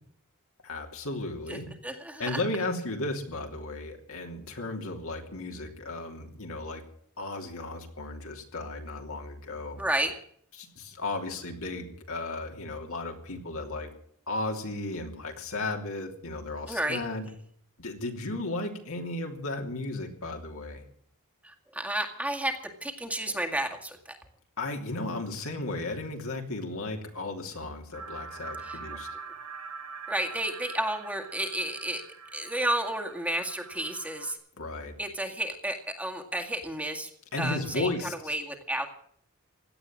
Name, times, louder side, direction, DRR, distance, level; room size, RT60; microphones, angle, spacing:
voice 1, 0.6-1.7 2.2-6.8 7.2-9.8 10.6-13.9 14.3-17.3 17.8-20.8 24.6-29.1 34.6-34.9 37.3-38.3, left 2 dB, 70° left, 3 dB, 3.0 m, -35 dB
voice 2, 1.5-2.4 9.8-10.1 16.7-17.0 21.4-24.2 28.6-29.0 30.1-32.0 32.3-34.4 35.0-37.1 37.4-37.9 38.3-38.9, right 1 dB, 5° right, 3 dB, 2.0 m, -32 dB
sound 1, 27.9-34.3, right 5 dB, 85° right, 2.4 m, -43 dB
17.0 x 11.5 x 7.5 m, 0.63 s
head